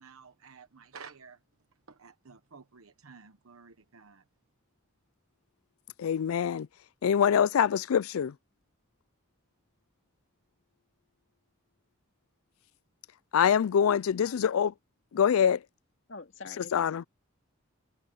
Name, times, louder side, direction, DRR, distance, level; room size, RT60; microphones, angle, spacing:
voice 1, 0.0-1.4 1.9-4.2, right 5 dB, 90° right, 1.0 m, -52 dB
voice 2, 6.0-6.7 7.0-8.3 13.3-14.7 15.1-15.6 16.6-17.0, left 8 dB, 90° left, 0.4 m, -25 dB
voice 3, 16.1-17.1, left 3 dB, 60° left, 2.3 m, -46 dB
head